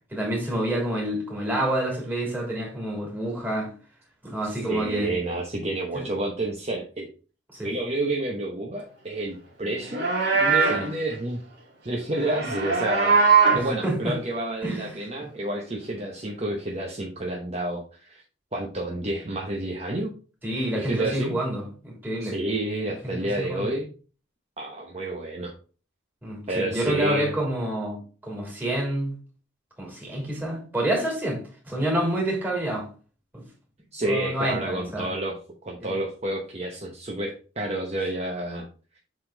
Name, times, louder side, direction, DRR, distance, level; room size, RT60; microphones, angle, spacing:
voice 1, 0.1-3.7 4.2-5.1 5.9-6.0 7.5-7.7 10.7-10.9 13.5-14.1 14.6-15.0 20.4-22.3 23.0-23.7 26.2-29.2 29.8-32.9 33.3-33.4 34.0-35.1 35.8-36.0, right 1 dB, 10° right, 3.0 m, -28 dB
voice 2, 4.6-7.1 7.6-10.0 10.3-11.4 11.8-13.2 13.5-18.2 18.5-20.1 20.7-21.3 22.2-23.9 24.6-25.5 26.5-27.4 33.9-35.4 35.6-38.7, right 1 dB, 35° right, 0.9 m, -29 dB
Livestock farm animals working animals, 9.8-10.9 12.2-13.7, right 5 dB, 55° right, 2.3 m, -21 dB
7.4 x 3.9 x 3.8 m
head